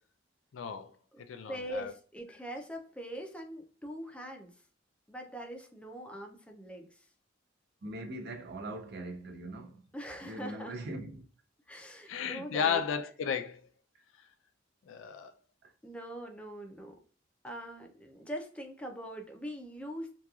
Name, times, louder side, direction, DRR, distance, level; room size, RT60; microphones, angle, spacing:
voice 1, 0.5-0.9 1.2-1.9 12.1-13.6 14.9-15.3, left 7 dB, 80° left, 0.4 m, -33 dB
voice 2, 1.5-4.5 5.1-6.9 9.9-10.8 11.7-12.8 15.8-17.0 17.4-20.2, equal, 5° left, 0.4 m, -42 dB
voice 3, 7.8-9.8 10.2-11.2 15.6-15.7, right 1 dB, 55° right, 0.5 m, -41 dB
2.9 x 2.3 x 2.3 m
head